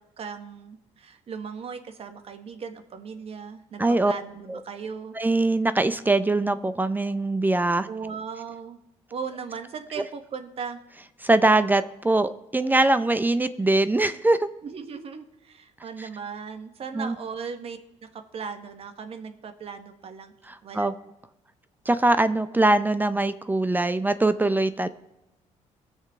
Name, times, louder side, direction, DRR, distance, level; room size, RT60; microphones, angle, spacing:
voice 1, 0.2-5.2 7.9-8.8 9.1-10.8 14.6-17.8 18.1-20.3 20.6-20.9, right 6 dB, 50° right, 7 dB, 1.4 m, -37 dB
voice 2, 3.8-4.1 4.5-4.6 5.2-7.9 11.2-14.5 16.0-16.1 16.9-17.1 20.5-20.9 21.9-24.9, right 2 dB, 15° right, 12 dB, 0.5 m, -22 dB
20.0 x 6.8 x 3.6 m, 0.93 s
cardioid pair, 100°, 13 cm